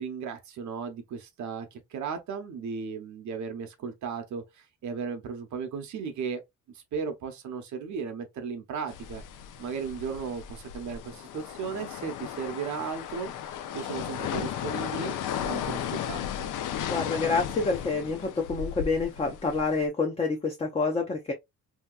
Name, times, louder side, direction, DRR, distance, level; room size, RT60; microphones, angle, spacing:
voice 1, 0.0-6.4 6.7-9.2 9.6-13.3 13.7-16.2, right 6 dB, 65° right, 0.8 m, -35 dB
sound 1, 8.9-19.9, left 9 dB, 70° left, 0.5 m, -35 dB
voice 2, 16.9-21.3, left 4 dB, 20° left, 0.5 m, -28 dB
3.2 x 2.8 x 2.3 m
cardioid pair, 165°, 32 cm